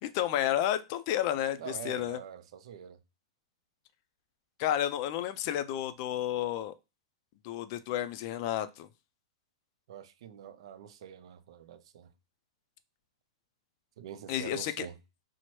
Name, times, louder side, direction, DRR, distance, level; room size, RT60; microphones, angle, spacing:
voice 1, 0.0-2.2 4.6-6.7 7.4-8.9 14.3-14.9, left 11 dB, 40° left, 0.4 m, -31 dB
voice 2, 1.6-3.0 9.9-12.1 14.0-15.0, right 9 dB, 65° right, 0.4 m, -45 dB
4.3 x 2.0 x 3.0 m
hypercardioid pair, 150°, 3 cm